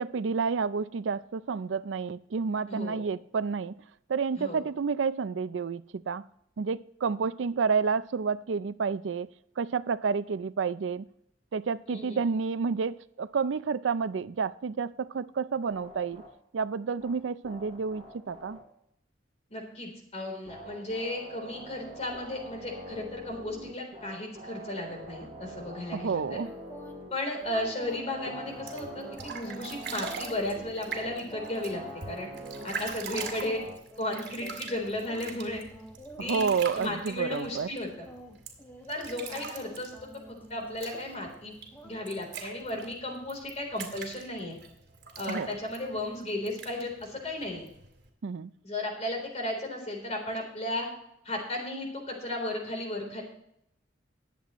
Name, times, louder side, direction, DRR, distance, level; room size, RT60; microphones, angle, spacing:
voice 1, 0.0-3.7 4.1-6.3 6.6-9.3 9.6-11.1 11.5-16.2 16.5-18.6 25.9-26.5 36.2-37.7 45.3-45.5 48.2-48.5, right 5 dB, 80° right, 0.4 m, -30 dB
voice 2, 2.7-3.0 4.4-4.6 11.9-12.2 19.5-26.4 27.1-32.3 32.6-33.6 34.0-35.6 36.2-37.9 38.9-40.2 40.5-41.5 41.8-44.6 45.2-47.6 48.6-50.9 51.2-53.2, left 1 dB, 35° left, 3.7 m, -35 dB
sound 1, 15.7-16.3 17.0-17.1 17.4-18.6 20.5-27.1 27.4-33.7, right 1 dB, 35° right, 5.0 m, -44 dB
sound 2, 26.3-27.0 27.4-35.3 35.7-37.0 37.3-37.8 38.1-41.4 41.7-42.4 42.8-43.0, right 1 dB, 10° left, 1.3 m, -48 dB
sound 3, 28.5-48.1, right 5 dB, 60° right, 2.8 m, -43 dB
21.0 x 8.3 x 3.1 m
head